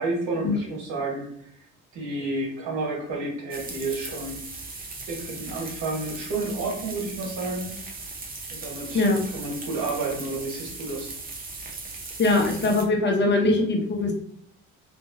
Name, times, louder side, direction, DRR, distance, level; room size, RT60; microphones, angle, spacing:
voice 1, 0.0-1.6 1.9-4.4 5.1-7.7 8.5-9.0 9.3-11.1, right 2 dB, 85° right, -2 dB, 1.2 m, -30 dB
sound 1, 3.5-12.8, right 3 dB, 30° right, 0.7 m, -38 dB
voice 2, 12.2-14.1, left 2 dB, 35° left, 1 dB, 0.8 m, -21 dB
3.0 x 2.5 x 2.5 m, 0.68 s
cardioid pair, 90°, 30 cm